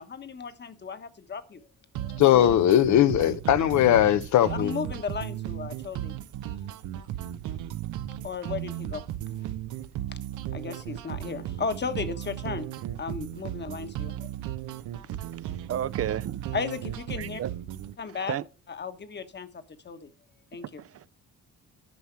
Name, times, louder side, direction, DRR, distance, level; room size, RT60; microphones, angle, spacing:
voice 1, 0.0-1.6 2.0-2.2 4.5-6.1 6.4-6.6 8.2-9.0 9.4-9.5 10.1-10.2 10.5-12.7 13.0-14.3 16.5-17.4 18.0-18.4 18.7-19.5 19.8-20.1 20.5-20.8, left 5 dB, 35° left, 1.2 m, -35 dB
sound 1, 2.0-18.0, right 12 dB, 85° right, 0.7 m, -36 dB
voice 2, 2.2-4.7, left 11 dB, 70° left, 0.7 m, -20 dB
voice 3, 15.3-16.5 17.2-17.5 18.3-18.4 20.8-21.0, right 10 dB, 50° right, 0.5 m, -32 dB
10.5 x 5.6 x 4.6 m
cardioid pair, 90°, 30 cm